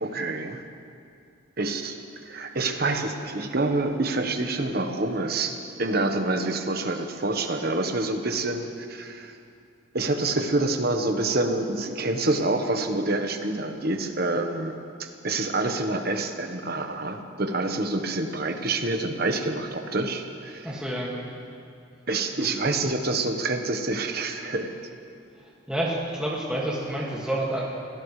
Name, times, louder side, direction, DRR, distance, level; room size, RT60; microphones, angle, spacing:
voice 1, 0.0-0.6 1.6-1.9 2.2-9.4 9.9-14.7 15.0-20.7 22.1-24.7, right 2 dB, 50° right, 5 dB, 1.2 m, -27 dB
voice 2, 20.6-21.1 22.4-22.5 25.4-27.6, right 1 dB, 5° right, -6 dB, 2.0 m, -29 dB
24.5 x 17.0 x 3.3 m, 2.5 s
head